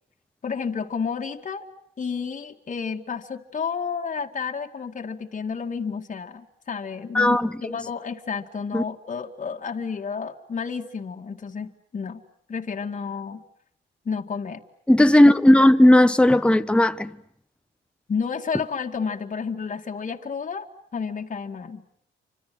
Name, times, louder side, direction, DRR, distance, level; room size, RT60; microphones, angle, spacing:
voice 1, 0.4-1.6 2.0-12.2 12.5-13.4 14.1-14.6 18.1-20.7 20.9-21.8, left 5 dB, 40° left, 2.2 m, -31 dB
voice 2, 7.1-7.5 8.7-8.8 14.9-17.1, left 1 dB, 5° left, 1.2 m, -15 dB
29.0 x 26.0 x 7.8 m
cardioid pair, 90°, 20 cm